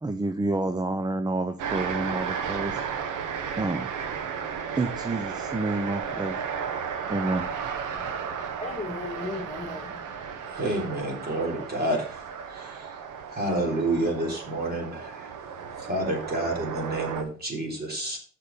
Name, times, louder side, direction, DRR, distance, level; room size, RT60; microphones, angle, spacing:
voice 1, 0.0-2.8 3.6-3.9 4.8-6.4 7.1-7.5, right 2 dB, 15° right, 0.6 m, -29 dB
sound 1, 1.6-17.2, right 7 dB, 85° right, 1.1 m, -34 dB
voice 2, 7.9-10.0, left 3 dB, 20° left, 1.7 m, -37 dB
voice 3, 10.6-12.2 12.5-12.8 13.3-15.3 15.9-18.2, right 1 dB, 30° right, 3.4 m, -29 dB
6.7 x 5.9 x 5.2 m
cardioid pair, 90°, 30 cm